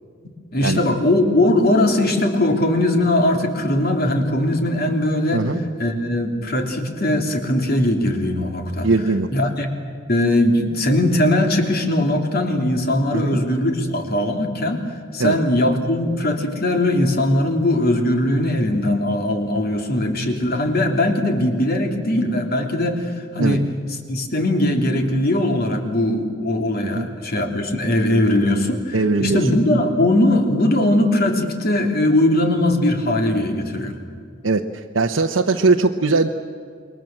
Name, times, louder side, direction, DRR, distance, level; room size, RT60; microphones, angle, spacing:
voice 1, 0.5-5.5 5.8-8.9 9.3-9.7 10.1-14.8 15.1-23.6 24.1-34.0, left 1 dB, 55° left, 4 dB, 3.3 m, -20 dB
voice 2, 5.3-5.6 8.8-9.3 13.1-13.4 15.2-15.3 18.4-18.5 23.4-23.6 26.9-27.1 28.9-29.4 34.4-36.3, right 3 dB, 90° right, 2 dB, 1.0 m, -20 dB
28.0 x 22.5 x 7.7 m, 2.2 s
head